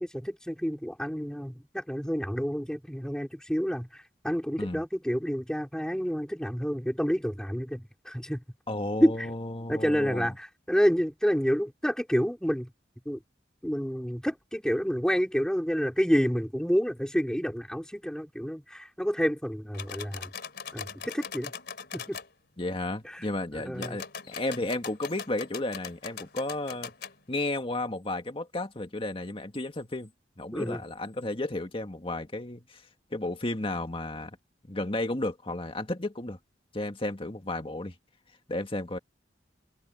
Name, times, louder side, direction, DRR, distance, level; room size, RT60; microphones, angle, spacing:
voice 1, 0.0-8.4 9.0-9.3 9.7-12.7 13.0-13.2 13.6-20.3 20.7-21.5 21.9-22.2 23.1-23.2 23.5-24.0 30.5-30.8, equal, 5° left, 4.7 m, -29 dB
voice 2, 8.7-10.3 22.6-26.9 27.3-30.1 30.4-32.8 33.1-34.4 34.7-36.4 36.7-37.9 38.5-39.0, left 2 dB, 30° left, 1.9 m, -33 dB
sound 1, 19.7-22.3 23.7-27.2, left 6 dB, 65° left, 3.9 m, -41 dB
head